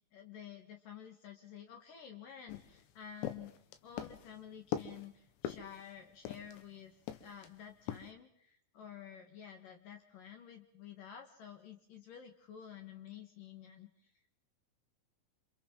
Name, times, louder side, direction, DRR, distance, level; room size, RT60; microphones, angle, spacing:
voice 1, 0.0-3.5 3.8-14.1, left 9 dB, 60° left, 4 dB, 2.6 m, -51 dB
sound 1, 2.5-6.7 7.1-7.5 7.9-8.1, left 10 dB, 85° left, 3.5 m, -42 dB
28.5 x 27.5 x 3.8 m, 0.65 s
omnidirectional pair, 5.2 m